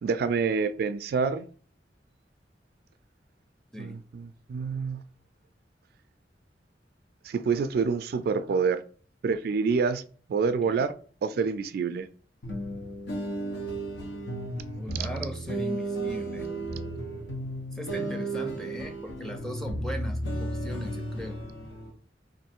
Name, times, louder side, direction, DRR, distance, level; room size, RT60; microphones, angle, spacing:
voice 1, 0.0-1.5 3.8-5.0 7.2-8.8 9.2-10.0 10.3-10.9 11.2-12.1, right 5 dB, 60° right, 0.3 m, -27 dB
sound 1, 12.4-21.9, right 1 dB, 75° left, 0.9 m, -34 dB
voice 2, 14.8-16.5 17.7-21.4, equal, 5° left, 0.5 m, -38 dB
3.1 x 2.6 x 4.4 m
head